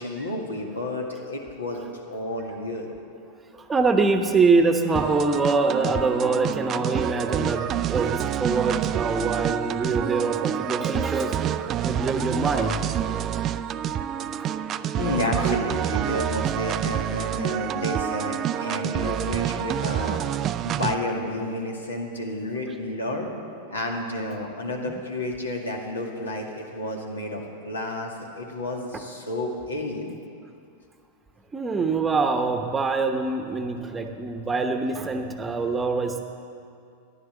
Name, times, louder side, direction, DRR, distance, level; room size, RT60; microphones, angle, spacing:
voice 1, 0.0-2.9 13.1-13.3 13.6-13.7 14.9-20.2 20.6-23.3 23.7-30.2, left 1 dB, 75° left, 1 dB, 2.0 m, -31 dB
voice 2, 3.5-12.8 13.4-13.5 14.3-14.5 15.2-15.6 16.0-16.2 31.5-36.2, right 4 dB, 15° right, 5 dB, 1.0 m, -24 dB
sound 1, 5.0-21.0, right 10 dB, 30° right, 0.4 m, -28 dB
14.5 x 11.0 x 7.1 m, 2.4 s
figure-of-eight pair, 90°, 0 cm